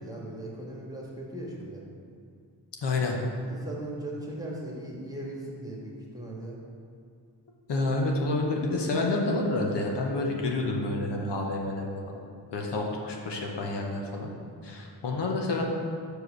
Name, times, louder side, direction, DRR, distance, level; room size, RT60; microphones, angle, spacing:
voice 1, 0.0-1.8 3.0-3.1 3.5-6.6, right 1 dB, 10° right, -3 dB, 1.5 m, -38 dB
voice 2, 2.8-3.2 7.7-12.2 12.5-14.3 14.6-15.6, left 2 dB, 70° left, 0 dB, 1.0 m, -29 dB
5.0 x 4.6 x 6.1 m, 2.2 s
cardioid pair, 65°, 44 cm